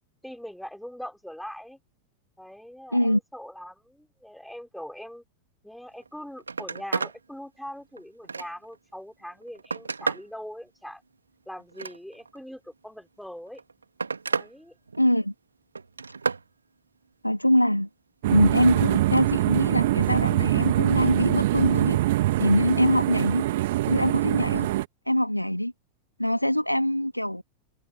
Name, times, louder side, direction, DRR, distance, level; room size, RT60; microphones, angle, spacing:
voice 1, 0.2-1.8 2.4-5.2 5.6-11.0 11.5-13.6 14.3-14.8, equal, ahead, 5.1 m, -42 dB
Telephone, 6.0-6.1 6.4-7.2 7.7-8.8 9.3-10.3 11.6-12.4 13.4-14.5 14.9-15.3 15.7-16.5 18.9-19.3 20.7-20.8, right 4 dB, 75° right, 2.5 m, -32 dB
voice 2, 15.0-15.3 17.2-17.9 18.3-22.0 22.4-23.5 23.9-24.7 25.1-25.7 26.2-27.4, left 1 dB, 90° left, 1.8 m, -23 dB
sound 1, 18.2-24.9, right 16 dB, 55° right, 2.2 m, -24 dB
figure-of-eight pair, 90°, 0 cm